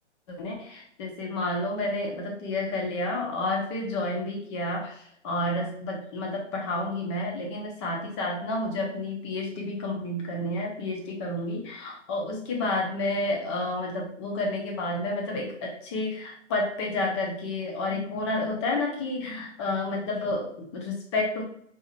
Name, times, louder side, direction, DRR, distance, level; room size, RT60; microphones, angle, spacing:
voice 1, 0.3-21.4, left 2 dB, 25° left, 0 dB, 0.7 m, -30 dB
4.6 x 2.9 x 2.2 m, 0.66 s
figure-of-eight pair, 135°, 37 cm